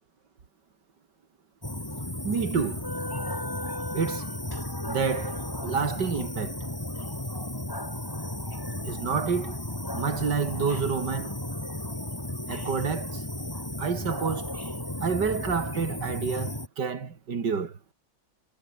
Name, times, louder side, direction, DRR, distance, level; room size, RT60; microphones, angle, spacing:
sound 1, 1.6-16.7, left 1 dB, 10° left, 3.2 m, -34 dB
voice 1, 2.2-2.9 3.9-4.3 4.9-6.6 8.8-9.6 9.9-11.4 12.5-13.2 13.8-14.5 15.0-17.8, right 5 dB, 55° right, 2.9 m, -29 dB
omnidirectional pair, 2.3 m